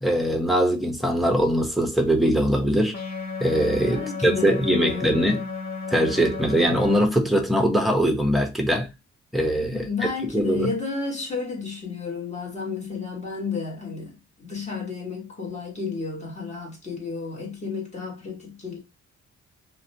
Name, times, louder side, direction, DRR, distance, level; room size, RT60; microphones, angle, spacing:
voice 1, 0.0-2.9 3.4-5.4 5.9-8.9 9.3-9.9 10.3-10.7, equal, ahead, 0.6 m, -22 dB
sound 1, 2.9-7.0, left 4 dB, 65° left, 0.9 m, -33 dB
voice 2, 3.8-5.4 9.7-18.8, left 4 dB, 25° left, 1.2 m, -32 dB
2.6 x 2.1 x 2.5 m
cardioid pair, 100°, 29 cm